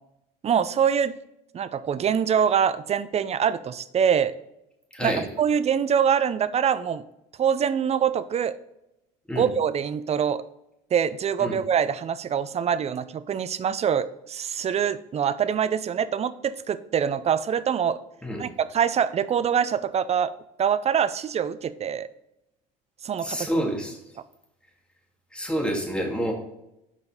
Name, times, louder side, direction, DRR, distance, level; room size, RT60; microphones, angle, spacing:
voice 1, 0.4-1.1 1.5-4.3 5.0-7.0 7.4-8.6 9.4-10.4 10.9-18.0 18.4-20.3 20.6-22.1 23.0-23.7, right 8 dB, 35° right, 14 dB, 0.6 m, -24 dB
voice 2, 4.9-5.3 9.3-9.4 11.4-11.6 18.2-18.4 23.2-24.0 25.3-26.3, equal, 5° left, 0 dB, 2.5 m, -28 dB
7.3 x 5.3 x 3.9 m, 0.86 s
hypercardioid pair, 70°, 20 cm